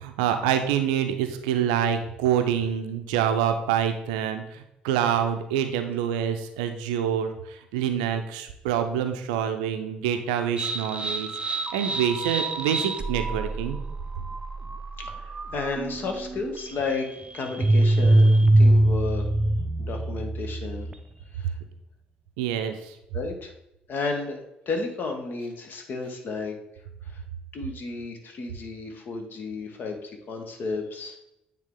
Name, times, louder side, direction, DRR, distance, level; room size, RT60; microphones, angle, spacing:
voice 1, 0.0-11.4 11.7-13.8 22.4-23.0, right 9 dB, 70° right, 7 dB, 0.5 m, -26 dB
sound 1, 10.6-21.2, right 1 dB, 25° right, 0.5 m, -24 dB
voice 2, 15.0-19.3 19.8-20.9 21.3-21.5 23.1-23.5 23.9-26.6 27.1-27.2 27.5-31.2, left 3 dB, 50° left, 4 dB, 1.2 m, -33 dB
8.9 x 3.5 x 3.8 m, 0.85 s
figure-of-eight pair, 45°, 4 cm